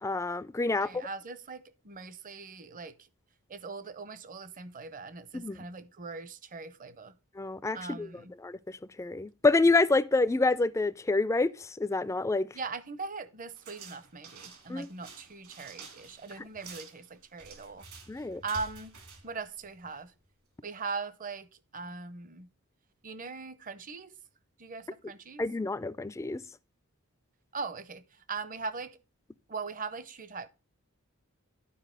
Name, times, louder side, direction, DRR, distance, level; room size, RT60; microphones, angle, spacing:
voice 1, 0.0-0.9 5.3-5.6 7.4-8.1 8.4-12.5 14.7-14.9 18.1-18.4 25.4-26.4, left 3 dB, 15° left, 0.3 m, -27 dB
voice 2, 0.7-3.1 3.5-7.2 7.7-8.3 12.5-17.9 18.2-19.0 19.2-20.1 20.6-22.5 23.0-24.2 24.6-25.4 27.5-29.0 29.5-30.5, right 4 dB, 40° right, 0.6 m, -40 dB
sound 1, 13.5-20.1, right 4 dB, 70° right, 2.3 m, -50 dB
11.0 x 4.8 x 3.6 m
head